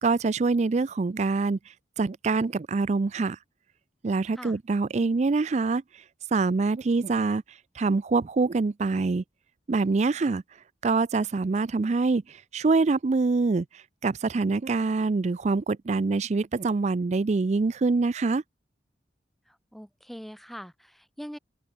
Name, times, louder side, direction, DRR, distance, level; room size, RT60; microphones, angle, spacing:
voice 1, 0.0-1.6 2.0-3.4 4.0-5.8 6.3-7.4 7.8-9.2 9.7-10.4 10.8-13.7 14.0-18.4, right 3 dB, 40° right, 0.4 m, -25 dB
voice 2, 19.5-21.4, equal, ahead, 5.5 m, -42 dB
head